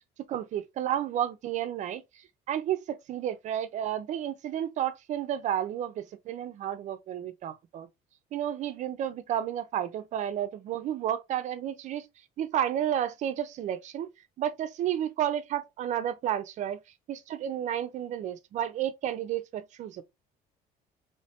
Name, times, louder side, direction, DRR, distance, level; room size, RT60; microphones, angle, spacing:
voice 1, 0.3-2.0 2.5-7.9 8.3-12.1 12.4-14.1 14.4-16.8 17.1-20.0, right 10 dB, 50° right, 0.5 m, -31 dB
3.2 x 3.1 x 2.8 m
cardioid pair, 150°, 16 cm